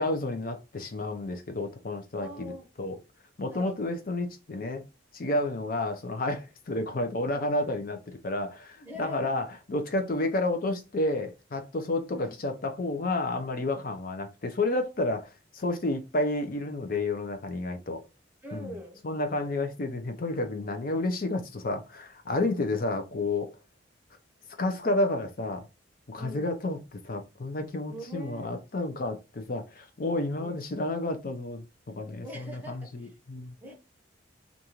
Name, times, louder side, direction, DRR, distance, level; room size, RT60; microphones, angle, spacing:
voice 1, 0.0-2.5 2.8-3.0 3.4-4.8 5.1-18.0 18.5-18.7 19.0-23.5 24.6-25.7 26.1-31.6 31.9-33.5, left 2 dB, 50° left, 0.6 m, -30 dB
voice 2, 2.2-2.7 3.5-3.7 8.8-9.3 12.1-12.3 18.4-19.0 19.4-19.5 26.1-26.5 27.9-28.5 30.4-30.5 32.2-33.1 33.6-33.7, equal, 10° right, 0.7 m, -42 dB
2.6 x 2.3 x 2.9 m
head